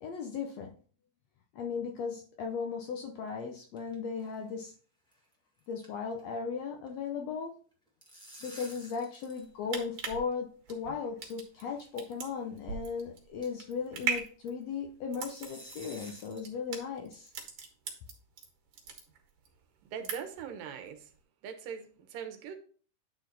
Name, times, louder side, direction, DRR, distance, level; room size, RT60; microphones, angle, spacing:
voice 1, 0.0-0.7 1.5-4.7 5.7-7.5 8.4-17.3, left 5 dB, 75° left, 2 dB, 1.6 m, -37 dB
sound 1, 3.3-3.9 4.2-4.4 4.6-4.7 5.1-5.3 5.6-6.4 6.7-6.9 7.7-9.5 9.7-9.8 10.7-10.8 11.7-11.9 12.3-12.4 12.8-12.9 13.4-13.7 15.2-16.5, right 1 dB, 5° left, 0.6 m, -51 dB
sound 2, 9.4-18.5 18.7-19.5 19.8-20.5 20.8-21.0, right 6 dB, 70° right, 2.8 m, -39 dB
voice 2, 19.9-21.1 21.4-22.5, right 7 dB, 85° right, 6 dB, 2.6 m, -41 dB
9.3 x 4.0 x 4.0 m, 0.43 s
omnidirectional pair, 3.8 m